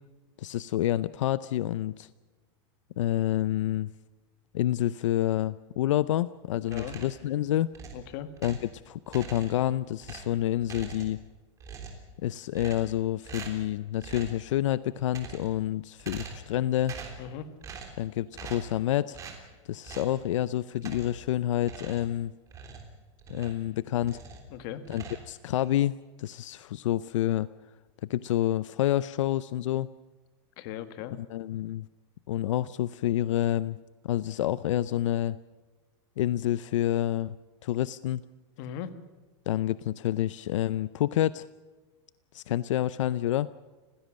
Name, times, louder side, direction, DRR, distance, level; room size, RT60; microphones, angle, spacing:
voice 1, 0.4-2.1 3.0-3.9 4.5-7.7 8.4-8.6 8.9-11.2 12.2-17.0 18.0-19.2 19.7-22.3 23.3-24.2 24.9-27.5 28.1-29.9 31.3-31.9 32.3-33.8 34.0-35.4 36.2-37.4 37.6-38.2 39.5-41.5 42.3-43.5, left 13 dB, 85° left, 17 dB, 0.6 m, -28 dB
voice 2, 6.5-7.0 7.9-8.3 17.2-17.5 24.5-24.8 30.6-31.1 38.6-39.0, left 10 dB, 45° left, 11 dB, 1.7 m, -38 dB
sound 1, 6.6-7.3 7.7-8.7 9.1-9.7 10.0-11.3 11.6-12.1 12.5-13.0 13.2-13.7 14.0-14.4 15.0-15.6 16.0-16.5 16.8-17.3 17.6-18.0 18.3-18.8 19.1-19.4 19.8-20.2 20.8-21.3 21.6-23.7 24.0-24.5 24.8-25.7, right 5 dB, 20° right, 3.4 m, -43 dB
29.0 x 16.0 x 6.4 m, 1.3 s
supercardioid pair, 160°, 16 cm